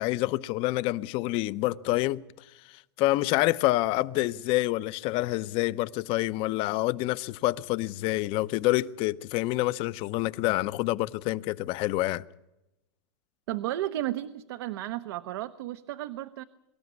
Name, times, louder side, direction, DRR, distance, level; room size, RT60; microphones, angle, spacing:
voice 1, 0.0-2.2 3.0-12.2, left 18 dB, 40° left, 0.7 m, -27 dB
voice 2, 13.5-16.4, right 14 dB, 70° right, 1.0 m, -33 dB
24.0 x 13.0 x 9.6 m
supercardioid pair, 145°, 14 cm